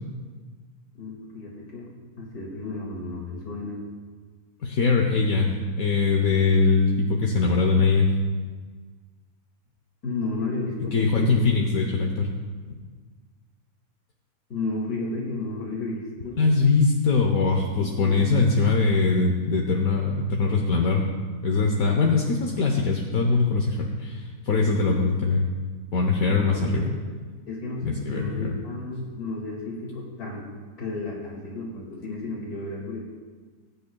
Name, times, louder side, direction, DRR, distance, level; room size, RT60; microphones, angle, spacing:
voice 1, 0.9-1.9 2.2-3.8 10.0-11.3 14.5-16.4 17.8-18.4 26.2-26.9 27.5-30.5 30.8-33.0, left 2 dB, 85° left, -3 dB, 2.7 m, -33 dB
voice 2, 4.6-5.5 5.8-8.1 10.9-12.3 12.7-12.8 16.4-21.0 21.4-25.5 25.9-26.8 27.8-28.6, left 4 dB, 70° left, 1 dB, 1.3 m, -22 dB
21.0 x 9.3 x 2.3 m, 1.5 s
omnidirectional pair, 1.6 m